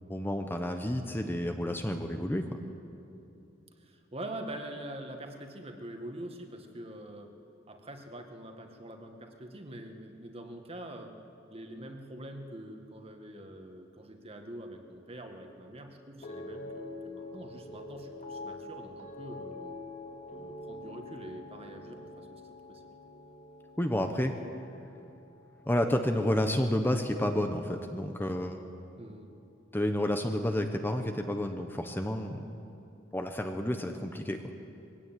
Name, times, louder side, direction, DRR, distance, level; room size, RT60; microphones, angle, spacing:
voice 1, 0.1-2.5 23.8-24.3 25.7-28.6 29.7-32.5 33.1-34.4, left 1 dB, 10° left, 5 dB, 1.0 m, -30 dB
voice 2, 3.8-7.3 7.7-11.2 11.5-19.9 20.3-22.3 22.7-22.8 29.0-29.3, right 1 dB, 30° right, 4 dB, 1.9 m, -44 dB
sound 1, 16.2-26.6 26.9-27.4, left 2 dB, 40° left, 1.8 m, -46 dB
22.0 x 16.5 x 9.2 m, 2.7 s
head